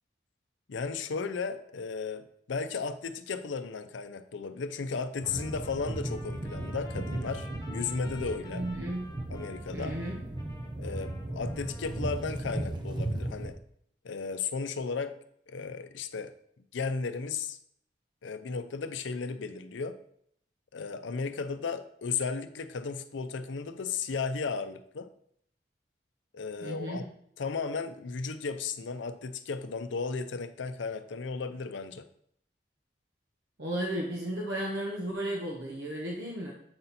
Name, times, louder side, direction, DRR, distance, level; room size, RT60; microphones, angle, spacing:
voice 1, 0.7-8.6 9.3-9.9 10.8-13.6 14.0-15.1 15.5-16.3 16.7-17.6 18.2-20.0 20.7-25.1 26.3-27.0 27.4-32.0, left 4 dB, 85° left, 10 dB, 0.5 m, -35 dB
Trumpet, 5.2-12.2, left 1 dB, 20° left, 1.0 m, -52 dB
sound 1, 5.2-13.5, right 1 dB, 25° right, 0.6 m, -36 dB
voice 2, 8.5-9.1 9.7-10.2 26.6-27.1 33.6-36.5, right 1 dB, 70° right, -2 dB, 1.1 m, -34 dB
7.8 x 4.2 x 4.0 m, 0.67 s
head